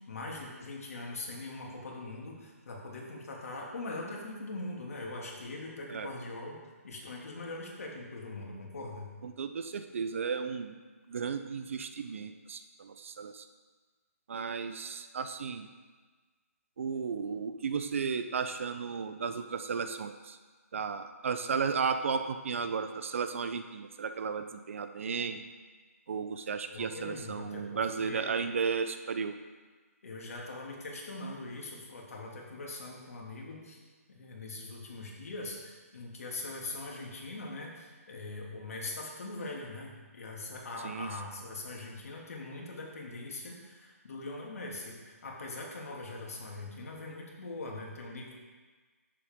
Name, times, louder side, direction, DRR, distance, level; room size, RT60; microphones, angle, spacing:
voice 1, 0.1-6.6 6.8-9.1 26.7-28.3 30.0-33.8 34.1-48.4, left 2 dB, 65° left, -2 dB, 2.6 m, -42 dB
voice 2, 9.2-10.8 11.1-13.4 14.3-15.7 16.8-20.4 20.7-25.4 26.1-29.4 40.8-41.1, right 5 dB, 55° right, 9 dB, 0.7 m, -34 dB
11.0 x 7.6 x 3.7 m, 1.4 s
hypercardioid pair, 160°, 8 cm